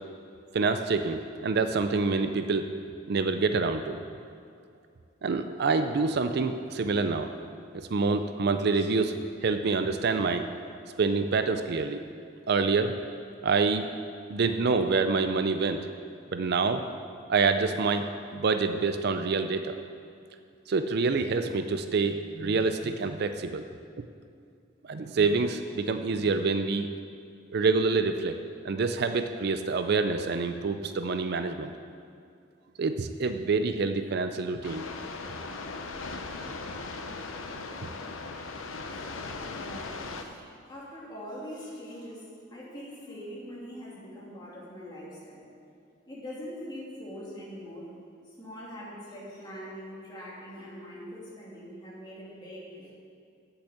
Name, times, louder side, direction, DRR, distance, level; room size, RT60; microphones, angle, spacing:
voice 1, 0.5-2.7 3.1-4.0 5.2-7.3 7.7-9.1 9.4-10.5 11.0-12.0 12.5-13.0 13.4-13.9 14.3-15.9 16.3-16.9 17.3-19.8 20.7-23.6 24.8-26.9 27.5-28.4 28.6-31.7 32.8-34.8, right 4 dB, 55° right, 8 dB, 0.4 m, -27 dB
sound 1, 34.6-40.2, left 3 dB, 90° left, 0.8 m, -38 dB
voice 2, 38.7-42.2 42.5-45.4 46.1-47.9 48.2-52.9, equal, 20° left, -6 dB, 2.7 m, -43 dB
7.9 x 7.1 x 8.4 m, 2.4 s
head